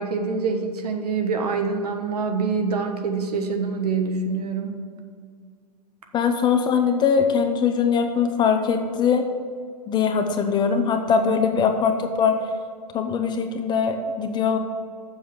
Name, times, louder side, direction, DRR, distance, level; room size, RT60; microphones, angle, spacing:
voice 1, 0.0-4.8, right 4 dB, 65° right, 4 dB, 1.3 m, -25 dB
voice 2, 6.1-9.3 9.9-12.4 12.9-14.6, left 6 dB, 20° left, 6 dB, 0.8 m, -21 dB
7.2 x 6.1 x 7.2 m, 2.1 s
figure-of-eight pair, 110°, 21 cm